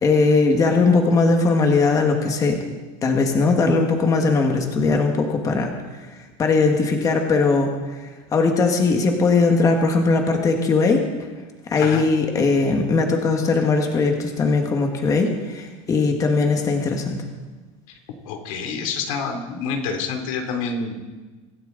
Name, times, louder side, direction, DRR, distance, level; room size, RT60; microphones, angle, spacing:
voice 1, 0.0-2.6 3.0-5.7 6.4-7.7 8.3-11.1 11.7-17.2, left 3 dB, 20° left, 3 dB, 1.6 m, -19 dB
voice 2, 11.8-12.1 18.2-21.1, left 5 dB, 90° left, 4 dB, 3.1 m, -28 dB
24.5 x 13.5 x 4.0 m, 1.3 s
cardioid pair, 165°, 17 cm